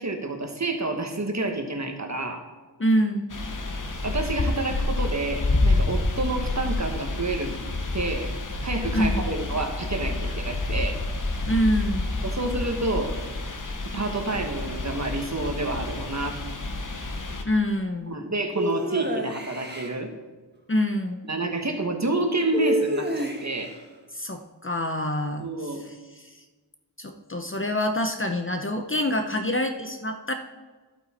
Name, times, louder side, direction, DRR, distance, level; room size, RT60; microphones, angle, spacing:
voice 1, 0.0-2.4 4.0-7.6 7.9-11.0 12.2-13.2 13.9-16.4 18.1-20.1 21.3-23.7 25.4-25.8, right 2 dB, 40° right, 4 dB, 1.4 m, -29 dB
voice 2, 2.8-3.4 8.9-9.2 11.4-12.2 17.4-18.2 20.7-21.3 24.1-25.5 26.2-26.3 27.0-30.3, equal, 30° left, 5 dB, 0.7 m, -26 dB
sound 1, 3.3-17.4, left 2 dB, 45° left, 1.1 m, -28 dB
sound 2, 18.6-19.9 22.5-23.7, right 1 dB, 25° right, 1.4 m, -28 dB
11.5 x 8.3 x 4.3 m, 1.3 s
wide cardioid pair, 80°, 43 cm